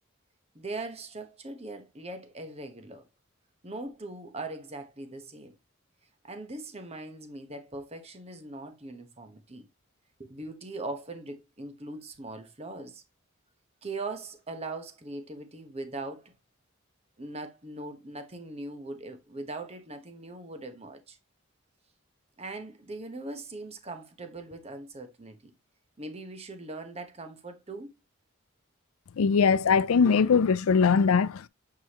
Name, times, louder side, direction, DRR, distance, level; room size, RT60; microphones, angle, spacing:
voice 1, 0.5-3.0 3.6-5.6 6.2-9.7 10.2-13.0 13.8-16.3 17.2-21.2 22.4-25.5 26.0-27.9, right 2 dB, 30° right, 1.1 m, -40 dB
voice 2, 29.2-31.5, left 5 dB, 90° left, 0.4 m, -21 dB
7.7 x 4.8 x 2.9 m
head